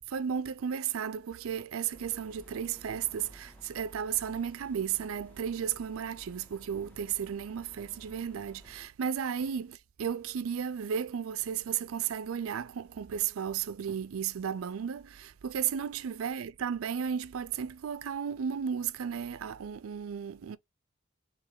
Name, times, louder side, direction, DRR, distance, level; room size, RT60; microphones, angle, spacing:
voice 1, 0.1-20.6, right 8 dB, 90° right, 0.4 m, -34 dB
sound 1, 1.9-8.9, right 1 dB, 10° left, 0.7 m, -55 dB
3.4 x 3.3 x 3.7 m
head